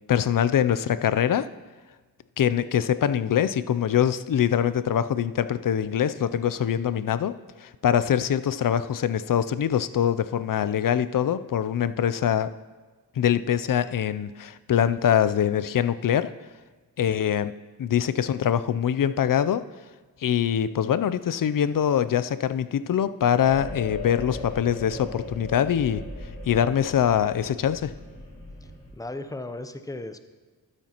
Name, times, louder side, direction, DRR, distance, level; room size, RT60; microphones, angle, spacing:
voice 1, 0.1-1.5 2.4-7.3 7.6-12.5 13.2-16.3 17.0-17.5 17.8-19.6 20.2-26.0 26.5-27.9, left 9 dB, 60° left, 14 dB, 0.5 m, -23 dB
sound 1, 23.4-28.9, left 2 dB, 40° left, 3.1 m, -38 dB
voice 2, 28.6-30.2, left 2 dB, 10° left, 9 dB, 0.6 m, -36 dB
12.5 x 9.3 x 3.0 m, 1.3 s
wide cardioid pair, 65°, 38 cm